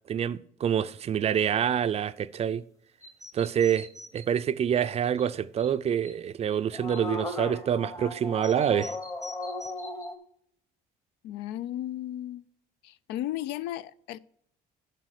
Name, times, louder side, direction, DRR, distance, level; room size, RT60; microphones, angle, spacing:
voice 1, 0.1-2.6 3.3-3.9 4.1-8.9, right 9 dB, 40° right, 0.4 m, -26 dB
sound 1, 3.0-4.3 4.8-4.9 5.2-5.3 5.6-5.7 6.0-6.1 6.5-10.2, left 1 dB, 20° left, 0.9 m, -37 dB
voice 2, 11.2-12.5 12.8-14.2, left 13 dB, 90° left, 0.4 m, -35 dB
7.5 x 5.5 x 6.4 m
cardioid pair, 110°, 17 cm